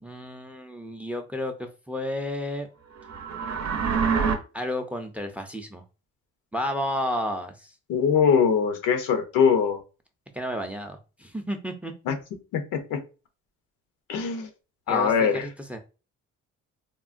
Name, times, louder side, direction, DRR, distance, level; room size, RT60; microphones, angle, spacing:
voice 1, 0.0-2.7 4.5-5.8 6.5-7.7 10.3-11.9 14.9-15.8, left 1 dB, 5° right, 6 dB, 0.4 m, -32 dB
sound 1, 3.0-4.4, right 6 dB, 65° right, 0.6 m, -25 dB
voice 2, 7.9-9.8 12.1-12.2 12.5-12.6 12.9-13.0 14.1-14.5 14.9-15.5, left 6 dB, 85° left, 7 dB, 0.6 m, -22 dB
3.6 x 2.0 x 2.4 m, 0.32 s
cardioid pair, 90°, 30 cm